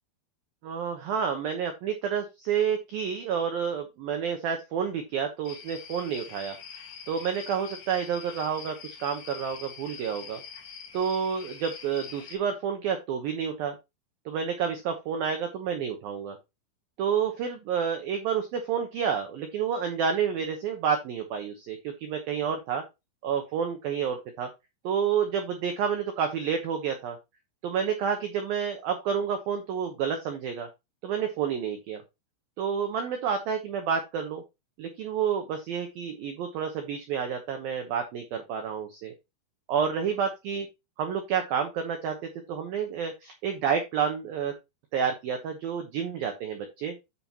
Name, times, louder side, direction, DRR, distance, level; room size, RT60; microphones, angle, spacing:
voice 1, 0.6-6.6 7.1-10.4 10.9-13.8 14.3-16.4 17.0-22.8 23.2-24.5 24.8-27.2 27.6-30.7 31.0-32.0 32.6-34.4 34.8-39.1 39.7-40.7 41.0-42.2 42.5-44.5 44.9-46.9, right 7 dB, 85° right, 5 dB, 2.1 m, -29 dB
sound 1, 5.4-12.4, left 7 dB, 60° left, 3.2 m, -44 dB
10.5 x 5.8 x 3.0 m, 0.23 s
omnidirectional pair, 5.8 m